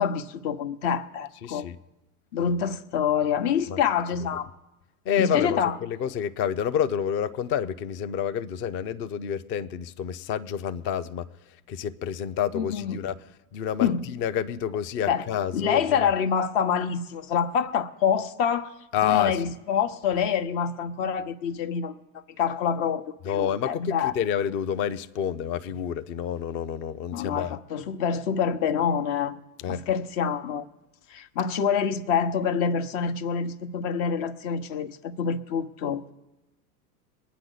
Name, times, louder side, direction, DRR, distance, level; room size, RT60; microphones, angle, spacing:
voice 1, 0.0-1.7 2.3-4.5 5.2-5.8 12.5-13.0 13.8-14.1 15.1-15.2 15.5-18.7 19.0-22.0 22.4-24.1 27.1-29.4 29.7-30.7 31.1-36.0, left 7 dB, 50° left, 1.1 m, -26 dB
voice 2, 1.4-1.8 3.7-3.8 5.1-11.3 11.7-13.1 13.5-16.1 18.9-19.4 23.2-27.6 29.6-29.8, left 8 dB, 25° left, 0.4 m, -28 dB
22.5 x 9.3 x 3.9 m
hypercardioid pair, 105°, 47 cm